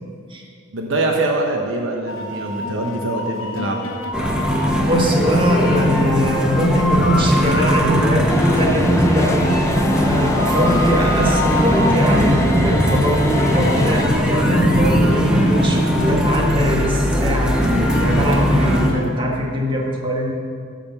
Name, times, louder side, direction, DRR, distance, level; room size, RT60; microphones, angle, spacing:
voice 1, 0.7-3.9, right 2 dB, 70° right, 1 dB, 1.0 m, -23 dB
sound 1, 2.1-19.1, left 2 dB, 70° left, 1.2 m, -30 dB
sound 2, 4.1-18.9, equal, 5° right, 1.0 m, -18 dB
voice 2, 4.8-8.3 8.6-9.6 10.0-15.8 16.1-20.3, equal, 25° right, -1 dB, 1.5 m, -22 dB
sound 3, 8.3-14.1, left 2 dB, 15° left, 0.4 m, -27 dB
12.0 x 5.1 x 7.0 m, 2.2 s
head